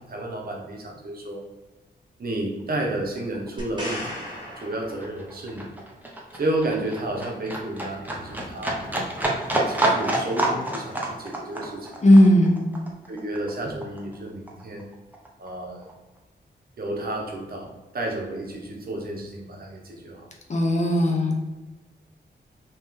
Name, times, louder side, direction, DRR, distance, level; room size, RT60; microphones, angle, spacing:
voice 1, 0.0-1.4 2.2-4.1 4.6-5.7 6.3-8.8 9.6-11.9 13.1-14.9 15.4-15.9 16.8-20.3, right 1 dB, 55° right, 0 dB, 0.9 m, -31 dB
Livestock farm animals working animals, 2.9-3.0 3.2-14.2 14.5-15.5 15.8-15.9, right 1 dB, 10° right, 0.7 m, -28 dB
sound 1, 3.6-5.6 9.2-9.3, equal, 25° right, 1.2 m, -36 dB
voice 2, 12.0-12.6 20.5-21.4, left 1 dB, 40° left, 0 dB, 0.7 m, -16 dB
3.2 x 2.9 x 3.6 m, 1.1 s
wide cardioid pair, 90°, 19 cm